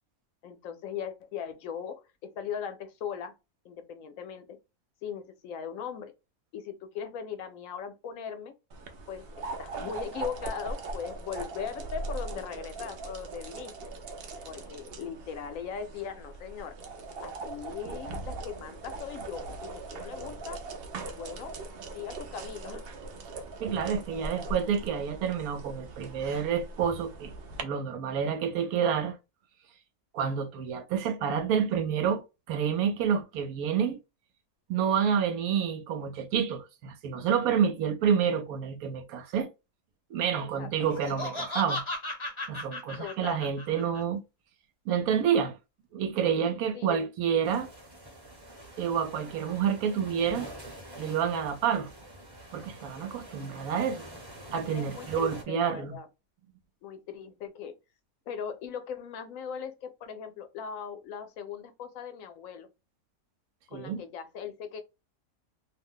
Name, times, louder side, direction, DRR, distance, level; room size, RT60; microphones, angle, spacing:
voice 1, 0.4-3.3 3.6-4.6 5.0-6.1 6.5-8.5 9.1-13.7 14.4-16.8 17.2-20.6 21.1-21.6 21.9-22.9 40.4-40.7 43.0-43.4 46.7-47.1 54.6-56.1 56.8-57.7 58.3-62.7 63.7-64.8, left 7 dB, 75° left, 1.0 m, -39 dB
sound 1, 8.7-27.6, right 3 dB, 60° right, 0.6 m, -40 dB
voice 2, 23.6-27.3 27.6-29.2 30.1-34.0 34.7-39.5 40.1-41.8 42.5-44.2 44.9-45.6 45.9-47.7 48.8-50.5 51.0-51.9 52.5-54.1 54.5-56.0 63.7-64.0, right 7 dB, 90° right, 1.1 m, -28 dB
Laughter, 40.8-44.0, left 1 dB, 30° left, 0.6 m, -36 dB
sound 2, 47.4-55.4, right 1 dB, 20° right, 0.7 m, -46 dB
2.6 x 2.1 x 3.6 m
omnidirectional pair, 1.5 m